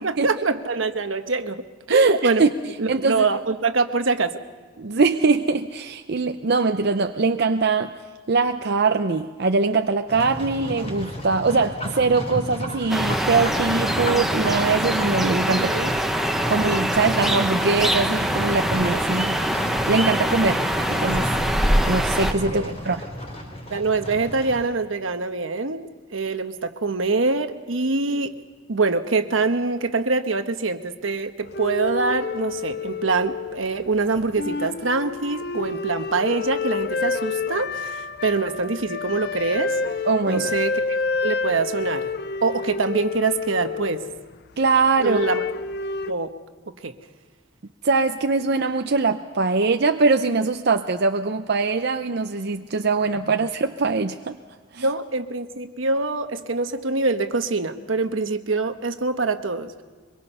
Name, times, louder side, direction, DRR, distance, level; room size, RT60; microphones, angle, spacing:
voice 1, 0.0-2.4 2.8-4.4 15.6-15.9 22.5-22.7 23.7-28.3 28.7-39.8 40.3-41.0 41.2-42.1 42.4-44.0 45.0-45.4 46.1-46.3 46.8-46.9 54.8-59.8, right 3 dB, 85° right, 8 dB, 1.2 m, -24 dB
voice 2, 1.9-2.5 2.9-3.3 4.8-7.9 8.3-15.9 16.5-19.6 19.9-20.6 20.9-21.3 21.9-23.0 40.0-40.5 44.6-45.2 47.8-54.4 54.7-54.9, right 4 dB, 55° right, 6 dB, 0.6 m, -22 dB
Livestock farm animals working animals, 10.1-24.7, equal, 35° left, 4.0 m, -32 dB
sound 1, 12.9-22.3, right 1 dB, ahead, 0.9 m, -24 dB
sound 2, 31.4-33.9 34.1-44.3 45.0-46.1, left 4 dB, 55° left, 0.6 m, -29 dB
24.0 x 22.5 x 5.6 m, 1.5 s
head